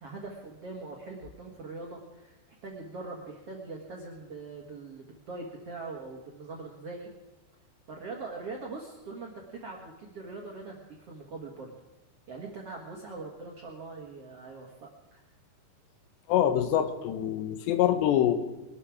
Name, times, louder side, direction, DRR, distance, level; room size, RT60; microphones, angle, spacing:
voice 1, 0.0-7.1 7.9-11.7 12.3-15.2, right 3 dB, 55° right, -1 dB, 1.7 m, -42 dB
voice 2, 16.3-18.4, left 11 dB, 80° left, 9 dB, 3.2 m, -25 dB
22.5 x 12.0 x 4.8 m, 1.0 s
omnidirectional pair, 5.0 m